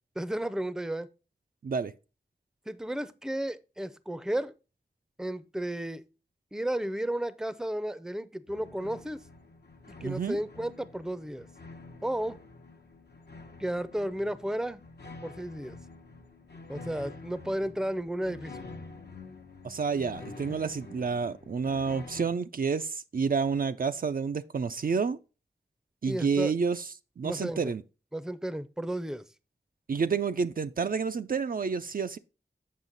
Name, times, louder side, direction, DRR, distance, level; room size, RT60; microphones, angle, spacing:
voice 1, 0.2-1.1 2.7-4.5 5.2-6.0 6.5-9.2 10.0-11.5 12.0-12.4 13.6-14.8 15.2-15.8 16.7-18.7 26.1-26.5 27.2-27.6 28.1-29.3, right 1 dB, 5° right, 0.5 m, -33 dB
sound 1, 8.5-22.3, left 3 dB, 75° left, 0.9 m, -48 dB
voice 2, 10.0-10.4 19.6-25.2 26.0-26.9 27.2-27.8 29.9-32.2, right 5 dB, 55° right, 0.4 m, -29 dB
7.5 x 5.6 x 3.9 m
cardioid pair, 45°, 17 cm